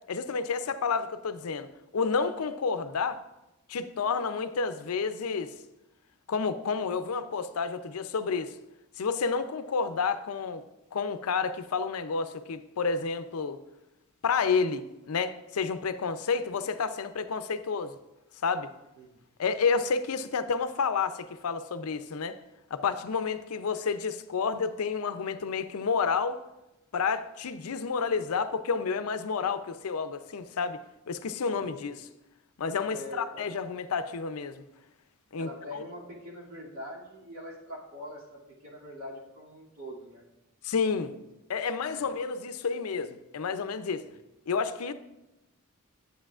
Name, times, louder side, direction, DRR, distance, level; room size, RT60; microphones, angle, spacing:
voice 1, 0.1-1.7 1.9-3.2 3.7-5.5 6.3-8.6 9.0-10.6 10.9-13.6 14.2-18.0 18.4-18.7 19.4-22.4 22.7-26.4 26.9-32.1 32.6-34.6 35.3-35.8 40.6-41.2 41.5-44.1 44.5-44.9, left 5 dB, 85° left, 11 dB, 0.5 m, -30 dB
voice 2, 31.5-31.9 32.9-33.6 35.4-40.2 41.9-42.1, equal, 75° right, -4 dB, 2.5 m, -43 dB
11.5 x 8.0 x 2.4 m, 0.96 s
head